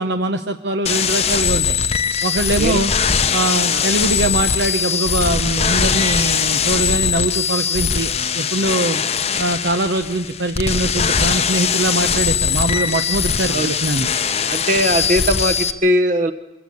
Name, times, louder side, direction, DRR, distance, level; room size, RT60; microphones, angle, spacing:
voice 1, 0.0-1.8 2.2-2.9 3.3-9.0 9.4-14.1, right 2 dB, 70° right, 7 dB, 0.9 m, -22 dB
sound 1, 0.9-15.7, left 7 dB, 35° left, 0.8 m, -20 dB
voice 2, 14.4-16.3, equal, 45° right, 11 dB, 1.1 m, -19 dB
23.0 x 16.0 x 8.5 m, 1.1 s
head